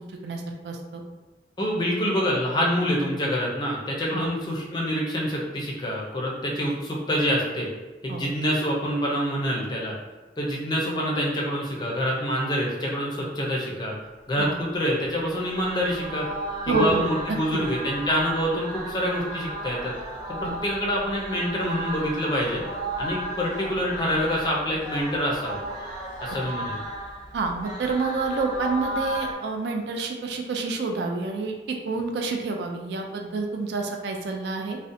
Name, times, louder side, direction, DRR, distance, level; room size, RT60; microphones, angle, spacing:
voice 1, 0.2-1.0 4.1-4.3 8.1-8.2 14.4-14.5 16.7-17.6 20.4-20.6 26.6-26.7 27.3-34.8, right 3 dB, 75° right, 3 dB, 0.3 m, -28 dB
voice 2, 1.6-7.7 8.0-9.9 10.4-13.9 14.3-16.3 16.6-19.9 20.4-22.6 23.0-25.6 26.2-26.8, equal, 25° left, -3 dB, 0.4 m, -26 dB
sound 1, 15.0-29.3, right 1 dB, 20° right, 0.7 m, -34 dB
2.6 x 2.0 x 2.5 m, 1.2 s
head